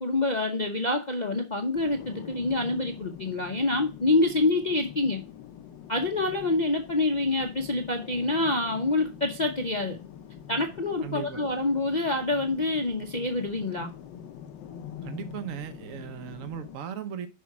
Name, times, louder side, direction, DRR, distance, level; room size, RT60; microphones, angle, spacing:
voice 1, 0.0-5.2 5.9-10.0 10.5-13.9, left 2 dB, 35° left, 0.7 m, -26 dB
sound 1, 1.8-16.8, left 9 dB, 75° left, 1.4 m, -45 dB
voice 2, 11.0-11.4 15.0-17.3, right 9 dB, 55° right, 1.1 m, -37 dB
6.3 x 5.6 x 5.9 m
omnidirectional pair, 2.0 m